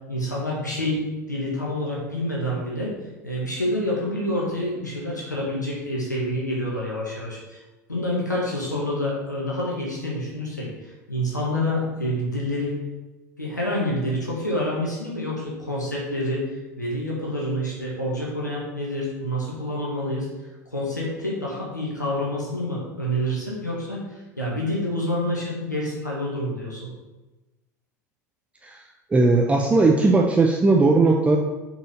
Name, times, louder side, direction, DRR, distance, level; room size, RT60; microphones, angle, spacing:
voice 1, 0.1-1.0 1.3-2.9 3.2-7.6 7.9-12.8 13.4-20.3 20.7-26.9, left 1 dB, 85° left, -4 dB, 1.6 m, -27 dB
voice 2, 29.1-31.4, right 3 dB, 15° right, 2 dB, 0.7 m, -18 dB
6.3 x 4.9 x 5.6 m, 1.1 s
figure-of-eight pair, 75°, 9 cm